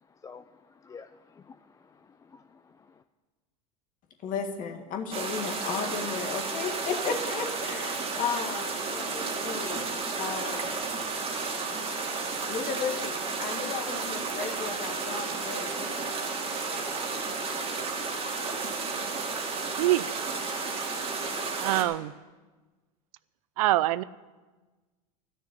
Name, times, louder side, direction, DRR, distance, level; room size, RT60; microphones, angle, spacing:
voice 1, 0.8-3.0, left 5 dB, 20° left, 10 dB, 0.4 m, -50 dB
voice 2, 4.2-10.8 12.5-15.9, left 6 dB, 45° left, 5 dB, 1.9 m, -34 dB
sound 1, 5.1-21.8, right 4 dB, 30° right, 2.3 m, -32 dB
voice 3, 19.6-20.2 21.6-22.1 23.6-24.0, right 16 dB, 75° right, 18 dB, 0.5 m, -25 dB
12.5 x 6.6 x 9.5 m, 1.3 s
hypercardioid pair, 100°, 19 cm